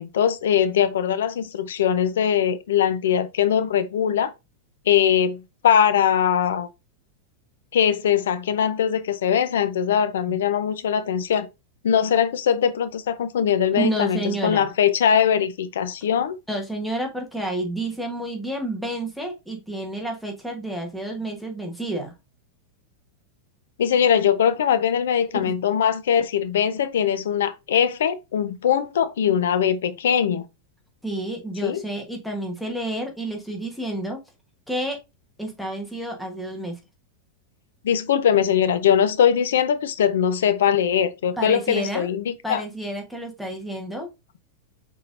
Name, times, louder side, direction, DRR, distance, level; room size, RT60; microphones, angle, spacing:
voice 1, 0.0-4.3 4.9-6.7 7.7-11.5 11.8-16.4 23.8-30.4 31.6-31.8 37.8-42.6, left 8 dB, 90° left, 0.6 m, -21 dB
voice 2, 13.7-14.7 16.5-22.1 31.0-34.2 34.7-35.0 35.4-36.8 41.4-42.1 42.4-44.1, right 1 dB, ahead, 1.1 m, -30 dB
5.8 x 3.6 x 2.5 m
supercardioid pair, 150°, 0 cm